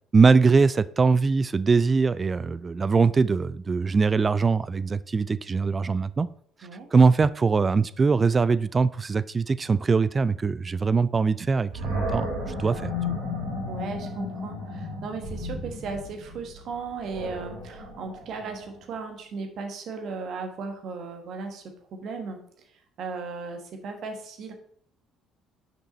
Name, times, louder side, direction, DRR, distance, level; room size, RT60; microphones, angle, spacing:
voice 1, 0.1-6.3 6.9-12.3 12.6-12.9, right 4 dB, 30° right, 17 dB, 0.3 m, -22 dB
Animal, 11.7-18.8, left 2 dB, 80° right, 2.9 m, -34 dB
voice 2, 13.7-21.6 21.9-22.4 22.7-24.5, right 4 dB, 60° right, 5 dB, 1.3 m, -36 dB
6.3 x 5.3 x 4.2 m, 0.63 s
hypercardioid pair, 55°, 0 cm